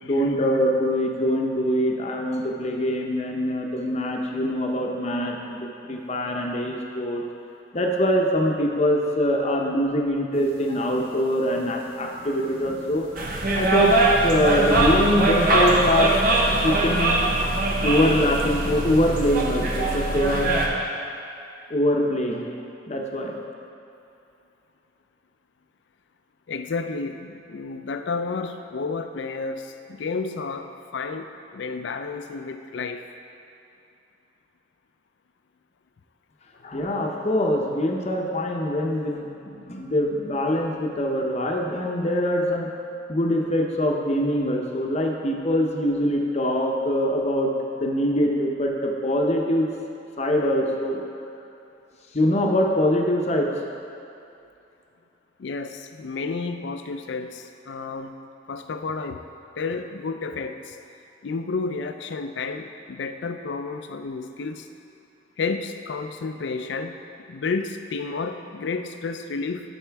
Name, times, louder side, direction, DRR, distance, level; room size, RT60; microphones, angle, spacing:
voice 1, 0.0-7.2 7.7-13.1 13.5-14.0 14.2-16.2 16.6-17.2 17.8-20.6 21.7-22.5 22.9-23.3 36.6-42.7 43.1-49.7 50.2-51.0 52.1-53.5, equal, 35° left, 1 dB, 0.7 m, -23 dB
sound 1, 10.3-20.1, equal, 30° right, 1.1 m, -46 dB
sound 2, 13.2-20.7, right 2 dB, 50° right, 0.8 m, -22 dB
voice 2, 26.5-31.3 31.5-33.0 55.4-58.1 58.5-59.2 59.6-60.8 61.2-64.7 65.4-66.9 67.3-69.6, left 4 dB, 70° left, 7 dB, 0.4 m, -31 dB
12.5 x 4.3 x 3.4 m, 2.7 s
head